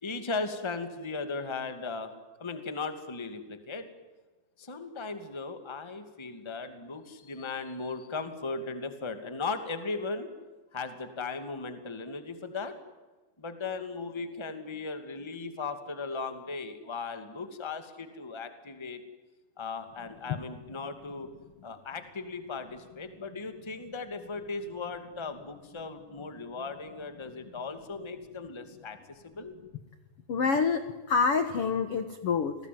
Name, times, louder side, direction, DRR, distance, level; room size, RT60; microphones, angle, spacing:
voice 1, 0.0-2.1 2.4-3.9 4.6-10.3 10.7-12.7 13.4-19.0 19.6-21.3 21.6-29.5, left 4 dB, 10° left, 8 dB, 1.2 m, -37 dB
voice 2, 30.3-32.5, left 5 dB, 65° left, 9 dB, 1.4 m, -27 dB
29.5 x 20.5 x 9.5 m, 1.2 s
omnidirectional pair, 5.0 m